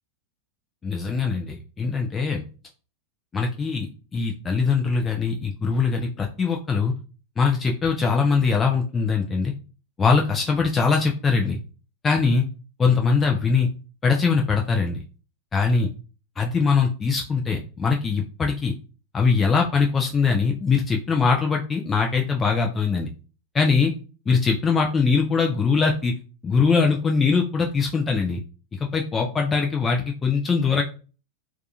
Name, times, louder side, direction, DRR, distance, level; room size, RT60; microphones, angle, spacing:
voice 1, 0.8-2.4 3.3-6.9 7.4-9.5 10.0-11.6 12.0-12.5 12.8-13.7 14.0-15.0 15.5-15.9 16.4-18.7 19.1-23.1 23.5-23.9 24.3-26.1 26.4-28.4 28.9-30.8, left 5 dB, 20° left, 1 dB, 0.3 m, -22 dB
2.3 x 2.2 x 2.7 m, 0.36 s
figure-of-eight pair, 90°, 0 cm